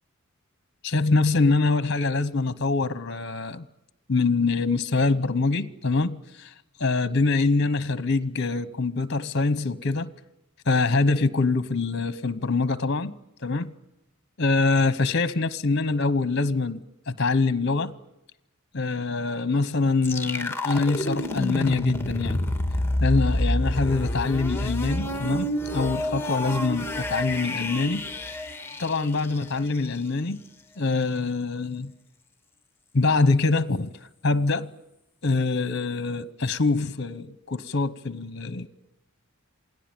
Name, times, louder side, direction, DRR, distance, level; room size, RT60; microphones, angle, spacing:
voice 1, 0.8-3.7 4.1-6.5 6.8-10.1 10.7-13.1 13.4-13.7 14.4-17.9 18.7-22.4 23.0-28.1 28.8-30.4 30.8-31.9 32.9-33.9 34.2-34.7 35.2-38.7, left 3 dB, 50° left, 0.9 m, -24 dB
sound 1, 20.0-29.9, left 1 dB, 10° left, 1.6 m, -28 dB
28.0 x 18.5 x 8.9 m
head